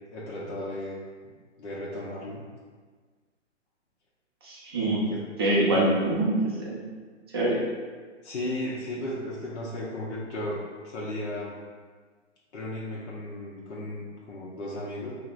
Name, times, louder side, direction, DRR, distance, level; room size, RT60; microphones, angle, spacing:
voice 1, 0.1-1.0 1.6-2.4 4.8-5.2 5.7-5.9 8.2-10.6 10.8-11.6 12.5-15.1, left 1 dB, 65° left, -6 dB, 0.8 m, -35 dB
voice 2, 4.4-5.0 5.4-6.9 7.3-7.6, right 1 dB, 20° right, -6 dB, 0.4 m, -25 dB
4.5 x 2.1 x 2.4 m, 1.5 s
hypercardioid pair, 145°, 37 cm